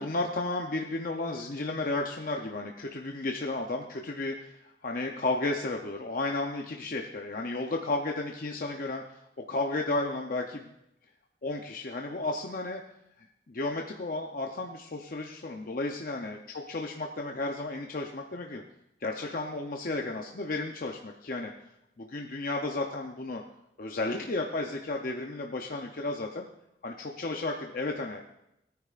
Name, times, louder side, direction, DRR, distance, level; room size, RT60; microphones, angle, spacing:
voice 1, 0.0-9.0 9.4-10.7 11.4-12.8 13.2-18.6 19.0-21.5 22.0-23.4 23.8-26.5 26.8-28.2, left 2 dB, 50° left, 2 dB, 0.6 m, -33 dB
17.0 x 9.4 x 2.5 m, 0.83 s
head